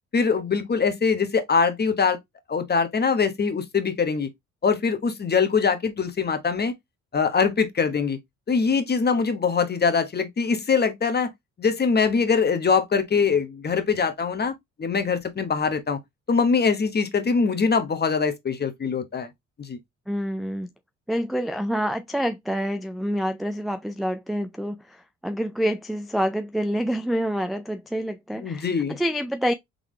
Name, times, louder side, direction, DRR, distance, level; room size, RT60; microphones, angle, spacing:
voice 1, 0.1-2.2 2.5-4.3 4.6-6.7 7.1-8.2 8.5-11.3 11.6-14.5 14.8-16.0 16.3-19.3 19.6-19.8 28.3-29.0, left 5 dB, 35° left, 1.0 m, -23 dB
voice 2, 20.1-20.7 21.1-29.5, equal, ahead, 0.3 m, -27 dB
3.9 x 3.4 x 3.1 m
cardioid pair, 90°, 30 cm